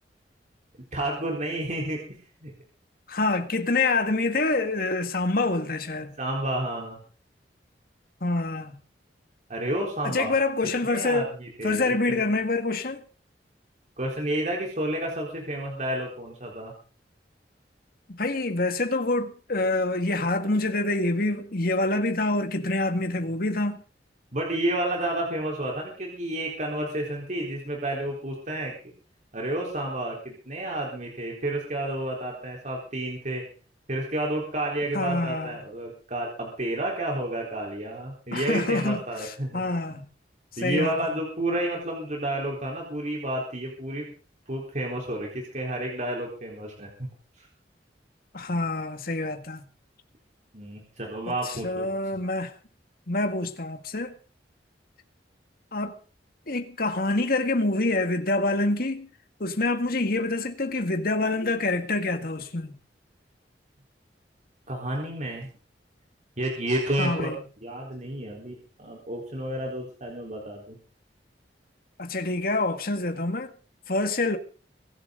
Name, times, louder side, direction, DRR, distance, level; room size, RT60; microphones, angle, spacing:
voice 1, 0.9-2.5 6.2-7.0 9.5-10.4 10.8-12.2 14.0-16.7 24.3-28.8 29.3-33.4 33.9-39.6 40.6-44.1 44.5-47.1 47.4-47.5 50.5-51.9 64.7-65.5 66.4-67.3 67.6-70.8, right 1 dB, 45° right, 4.1 m, -30 dB
voice 2, 3.1-6.2 8.2-8.8 10.0-11.3 11.6-13.0 18.1-23.8 34.9-35.6 38.3-40.1 40.5-41.1 48.3-49.6 51.3-52.5 53.1-54.1 55.7-56.0 56.5-59.1 59.4-62.7 67.0-67.4 72.0-73.5 73.9-74.4, left 2 dB, 55° left, 1.9 m, -26 dB
23.5 x 11.5 x 3.9 m
head